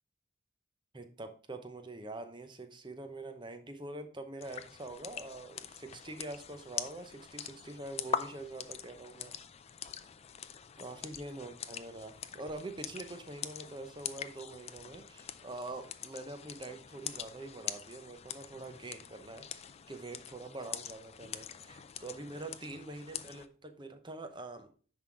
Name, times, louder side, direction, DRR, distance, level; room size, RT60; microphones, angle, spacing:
voice 1, 0.9-9.4 10.8-24.7, right 2 dB, 20° right, 8 dB, 0.7 m, -45 dB
sound 1, 4.4-23.5, left 8 dB, 30° left, 0.4 m, -44 dB
10.0 x 3.8 x 4.6 m, 0.42 s
head